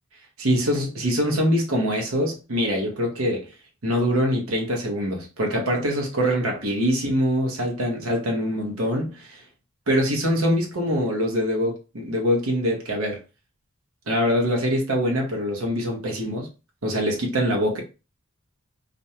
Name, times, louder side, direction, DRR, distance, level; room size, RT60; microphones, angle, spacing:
voice 1, 0.4-3.5 3.8-9.4 9.9-13.2 14.1-16.5 16.8-17.8, equal, 80° right, 0.8 m, -24 dB
2.5 x 2.2 x 2.8 m
head